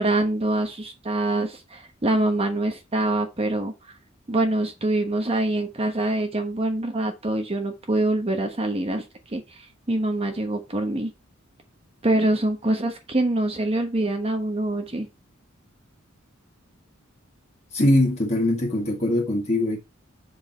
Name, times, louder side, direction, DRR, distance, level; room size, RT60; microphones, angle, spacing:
voice 1, 0.0-3.7 4.3-11.1 12.0-15.1, right 2 dB, 30° right, 1.1 m, -25 dB
voice 2, 17.7-19.8, left 1 dB, 35° left, 1.9 m, -22 dB
7.5 x 4.8 x 4.5 m
head